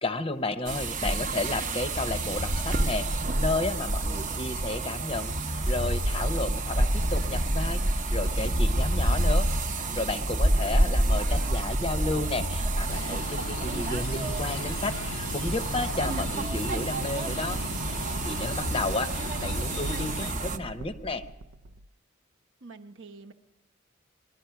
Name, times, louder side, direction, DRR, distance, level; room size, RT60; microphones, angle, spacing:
voice 1, 0.0-9.5 9.7-17.6 18.2-21.2, left 2 dB, 25° left, 10 dB, 0.6 m, -32 dB
sound 1, 0.6-20.6, right 1 dB, 40° right, 0.7 m, -28 dB
voice 2, 10.7-11.7 18.7-19.0 22.6-23.3, right 3 dB, 65° right, 5 dB, 0.9 m, -47 dB
sound 2, 11.4-21.9, right 1 dB, 85° right, 0.5 m, -41 dB
sound 3, 12.9-20.3, left 5 dB, 80° left, 0.5 m, -38 dB
20.5 x 12.0 x 5.7 m, 1.1 s
head